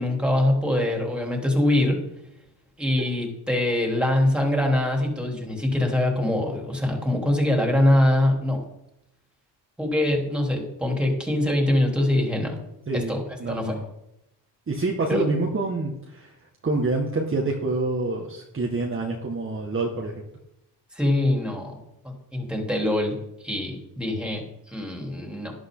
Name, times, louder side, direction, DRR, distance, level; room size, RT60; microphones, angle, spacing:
voice 1, 0.0-2.0 2.8-8.6 9.8-12.6 12.9-13.2 13.5-13.8 15.1-15.2 20.9-23.2 23.4-24.4 24.7-25.5, left 1 dB, ahead, 1 dB, 3.7 m, -23 dB
voice 2, 12.9-13.9 14.7-20.2, right 3 dB, 30° right, 0 dB, 1.8 m, -27 dB
12.0 x 11.0 x 4.0 m, 0.85 s
cardioid pair, 85°, 44 cm